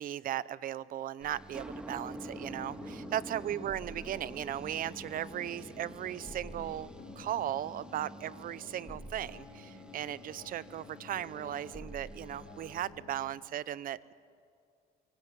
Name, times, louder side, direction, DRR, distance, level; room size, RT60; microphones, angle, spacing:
voice 1, 0.0-6.9 7.2-14.1, right 11 dB, 55° right, 19 dB, 0.7 m, -37 dB
sound 1, 1.2-12.9, right 1 dB, 5° right, 1.9 m, -47 dB
sound 2, 2.2-13.3, left 6 dB, 70° left, 4.1 m, -53 dB
24.5 x 24.0 x 9.3 m, 2.3 s
cardioid pair, 110°, 17 cm